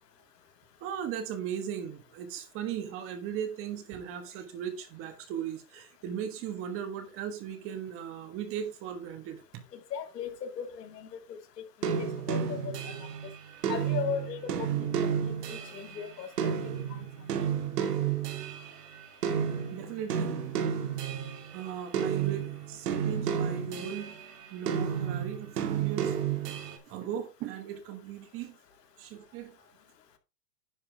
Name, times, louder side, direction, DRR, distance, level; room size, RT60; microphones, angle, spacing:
voice 1, 0.8-9.6 19.7-20.4 21.5-24.1 24.5-26.2 26.9-28.6 29.0-29.5, right 9 dB, 25° right, 1.5 m, -37 dB
voice 2, 9.7-11.4 11.8-12.8 13.7-14.7 15.0-15.1 15.5-16.3 16.9-17.1, left 8 dB, 85° left, 2.2 m, -37 dB
sound 1, 11.8-19.0 19.2-21.5 21.9-24.2 24.7-26.8, right 8 dB, 75° right, 2.3 m, -31 dB
10.5 x 7.0 x 3.4 m
supercardioid pair, 155°, 47 cm